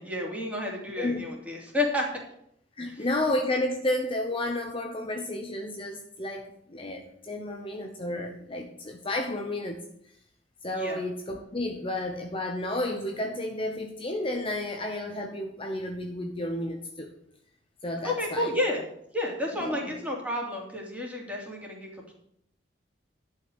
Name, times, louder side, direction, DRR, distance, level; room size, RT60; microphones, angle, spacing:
voice 1, 0.0-2.1 2.9-3.1 10.7-11.0 18.0-18.9 19.1-22.1, left 1 dB, 10° right, -2 dB, 3.0 m, -31 dB
voice 2, 1.0-1.3 2.8-9.8 10.6-17.1 17.8-18.5 19.5-19.9, left 1 dB, 30° left, 2 dB, 1.0 m, -32 dB
11.5 x 5.7 x 8.1 m, 0.72 s
head